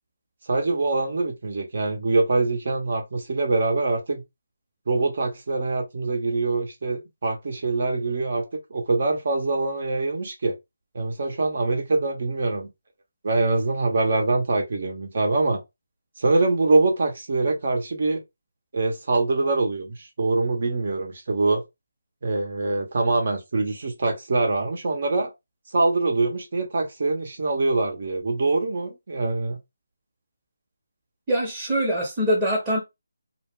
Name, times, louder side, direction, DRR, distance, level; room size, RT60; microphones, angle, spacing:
voice 1, 0.5-4.2 4.9-8.4 8.7-10.6 10.9-12.7 13.2-15.6 16.2-18.2 18.7-21.6 22.2-25.3 25.7-29.6, right 3 dB, 50° right, 0.9 m, -24 dB
voice 2, 31.3-32.8, equal, 15° right, 0.9 m, -23 dB
2.2 x 2.2 x 3.5 m
figure-of-eight pair, 160°, 0 cm